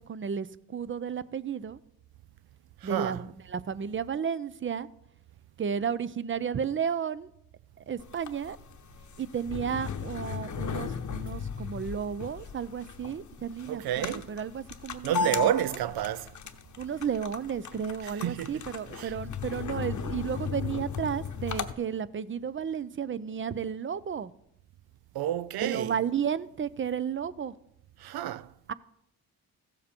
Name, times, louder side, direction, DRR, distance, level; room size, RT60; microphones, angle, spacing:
voice 1, 0.0-1.8 2.8-4.9 5.6-7.3 7.9-8.6 9.2-15.8 16.8-24.3 25.6-27.5 28.7-28.8, right 7 dB, 35° right, 0.5 m, -33 dB
voice 2, 2.8-3.2 13.7-14.3 15.0-16.3 18.2-18.5 19.0-19.1 25.1-25.9 28.0-28.5, right 12 dB, 90° right, 0.5 m, -29 dB
sound 1, 8.0-21.7, left 7 dB, 55° left, 0.8 m, -36 dB
15.0 x 7.3 x 4.4 m
cardioid pair, 85°, 36 cm